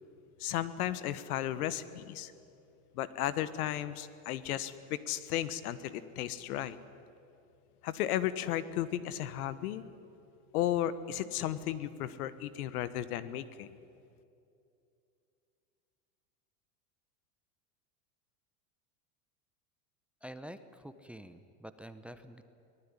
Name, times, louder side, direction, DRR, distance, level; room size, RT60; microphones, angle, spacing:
voice 1, 0.4-2.3 2.9-6.8 7.8-9.8 10.5-13.7, left 12 dB, 85° left, 14 dB, 1.4 m, -34 dB
voice 2, 20.2-22.4, equal, 5° right, 11 dB, 0.7 m, -47 dB
23.5 x 19.0 x 9.9 m, 2.6 s
supercardioid pair, 140°, 43 cm